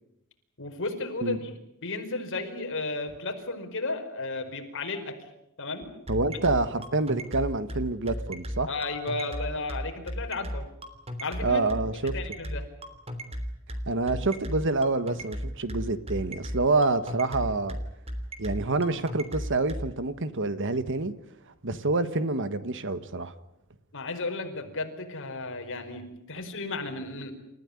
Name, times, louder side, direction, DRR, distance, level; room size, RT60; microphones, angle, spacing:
voice 1, 0.6-1.5 1.8-5.2 5.6-5.9 6.3-6.4 8.7-10.7 11.2-11.6 12.1-12.7 23.9-27.3, left 3 dB, 60° left, 5.0 m, -34 dB
sound 1, 5.8-19.8, equal, 30° right, 3.3 m, -34 dB
voice 2, 6.1-8.7 11.4-12.1 13.9-17.8 18.4-21.1 21.6-23.3, right 3 dB, 60° right, 1.6 m, -27 dB
29.0 x 15.0 x 9.9 m
head